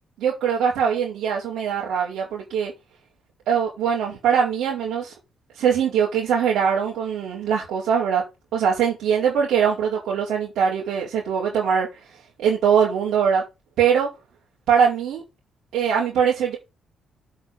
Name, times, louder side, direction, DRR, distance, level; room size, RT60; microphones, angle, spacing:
voice 1, 0.2-2.7 3.5-5.1 5.5-8.2 8.5-11.9 12.4-13.4 13.8-14.1 14.7-15.2 15.7-16.6, right 7 dB, 80° right, 4.5 m, -22 dB
8.0 x 6.6 x 5.6 m
cardioid pair, 90°, 0 cm